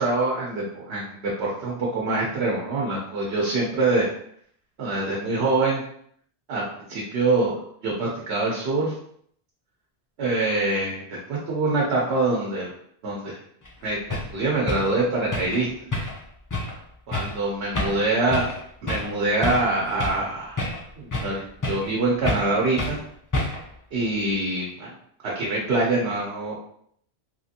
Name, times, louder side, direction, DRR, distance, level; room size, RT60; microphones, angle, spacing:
voice 1, 0.0-4.1 4.8-5.8 6.5-6.6 6.9-7.6 7.8-8.9 10.2-12.7 13.0-13.4 13.8-15.7 17.1-18.5 18.8-20.6 21.0-23.0 23.9-24.9 25.2-26.6, right 2 dB, 75° right, -4 dB, 0.9 m, -24 dB
sound 1, 13.6-13.7 14.1-14.3 14.7-14.9 15.3-15.6 15.9-16.2 16.5-16.7 17.1-17.4 17.7-18.0 18.3-18.6 18.9-19.1 19.4-20.2 20.6-21.3 21.6-21.9 22.2-22.5 22.8-23.0 23.3-23.7, left 2 dB, 30° left, 0.3 m, -28 dB
3.1 x 2.5 x 2.7 m, 0.67 s
omnidirectional pair, 1.1 m